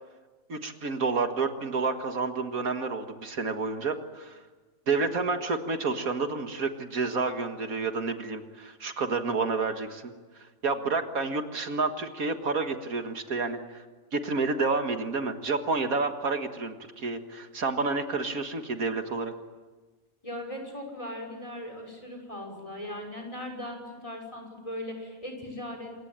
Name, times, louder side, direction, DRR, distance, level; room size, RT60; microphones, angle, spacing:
voice 1, 0.5-4.4 4.9-13.8 14.1-19.3, right 4 dB, 75° right, 6 dB, 2.2 m, -29 dB
voice 2, 20.2-26.0, left 1 dB, 20° left, 3 dB, 6.0 m, -38 dB
27.5 x 23.0 x 9.0 m, 1.3 s
omnidirectional pair, 1.5 m